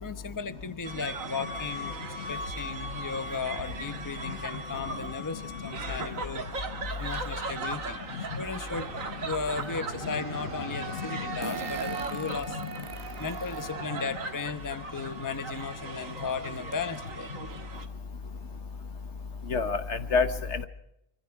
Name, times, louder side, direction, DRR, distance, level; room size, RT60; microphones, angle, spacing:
voice 1, 0.0-2.0 2.3-6.5 7.0-8.0 8.4-12.6 13.2-17.3, left 5 dB, 15° left, 11 dB, 0.9 m, -36 dB
sound 1, 0.8-17.8, right 3 dB, 80° right, 2.1 m, -38 dB
Fart, 8.7-8.8 11.4-13.7 14.3-14.4 15.7-15.8 16.2-16.3 16.7-17.0, right 2 dB, 25° right, 1.1 m, -42 dB
sound 2, 8.7-18.6, right 3 dB, 45° right, 1.7 m, -48 dB
voice 2, 19.5-20.7, left 5 dB, 60° left, 10 dB, 1.4 m, -28 dB
25.5 x 24.5 x 4.8 m, 0.83 s
omnidirectional pair, 1.4 m